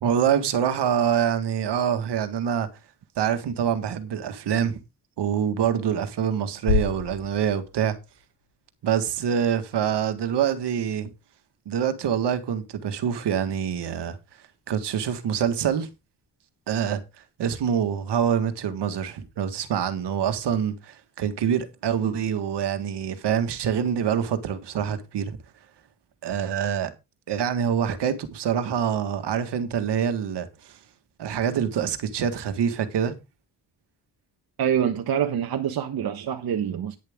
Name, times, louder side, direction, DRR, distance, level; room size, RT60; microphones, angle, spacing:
voice 1, 0.0-2.7 3.2-4.8 5.2-8.0 8.8-11.1 11.7-14.2 14.7-15.9 16.7-17.0 17.4-25.4 26.2-26.9 27.3-30.5 31.2-33.1, right 8 dB, 80° right, 1.8 m, -25 dB
sound 1, 6.7-8.7, left 6 dB, 85° left, 7.5 m, -29 dB
voice 2, 34.6-37.0, right 9 dB, 60° right, 1.2 m, -26 dB
11.0 x 10.5 x 3.6 m
cardioid pair, 125°, 41 cm